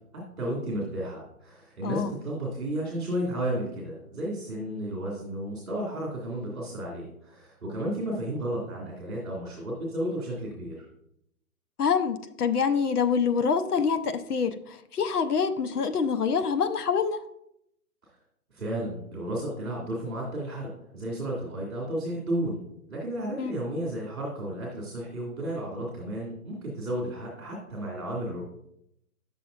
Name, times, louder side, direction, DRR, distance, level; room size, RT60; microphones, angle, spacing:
voice 1, 0.4-10.8 18.5-22.6 22.9-28.4, right 1 dB, ahead, -19 dB, 0.7 m, -33 dB
voice 2, 1.8-2.1 11.8-17.2 23.4-23.5, left 6 dB, 80° left, 9 dB, 0.8 m, -26 dB
9.2 x 6.8 x 2.5 m, 0.76 s
hypercardioid pair, 175°, 45 cm